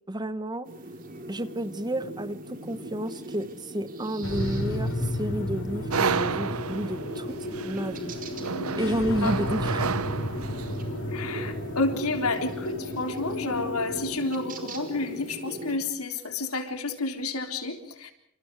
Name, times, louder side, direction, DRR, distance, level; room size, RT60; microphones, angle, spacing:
voice 1, 0.1-0.7 1.3-7.4 7.6-8.1 8.8-10.0, equal, 20° right, 13 dB, 1.2 m, -31 dB
sound 1, 0.6-15.8, right 1 dB, 40° right, 4.2 m, -41 dB
sound 2, 4.2-14.2, left 1 dB, 60° left, 3.6 m, -33 dB
sound 3, 5.9-10.8, right 5 dB, 80° right, 0.9 m, -31 dB
voice 2, 11.1-18.1, left 3 dB, 90° left, 6 dB, 3.7 m, -30 dB
29.0 x 28.0 x 4.9 m, 0.74 s
head